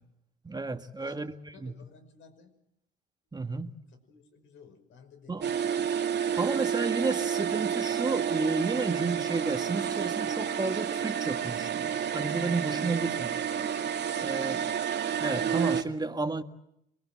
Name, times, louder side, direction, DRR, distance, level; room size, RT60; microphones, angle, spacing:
voice 1, 0.4-1.3 1.6-1.7 3.3-3.7 5.3-5.4 6.4-13.4 14.2-14.6 15.2-16.4, right 3 dB, 20° right, 1.8 m, -32 dB
voice 2, 1.5-2.5 3.9-5.9 14.2-14.7, left 5 dB, 80° left, 5.7 m, -55 dB
sound 1, 5.4-15.8, right 8 dB, 60° right, 2.3 m, -30 dB
27.5 x 22.5 x 7.6 m
cardioid pair, 90°, 20 cm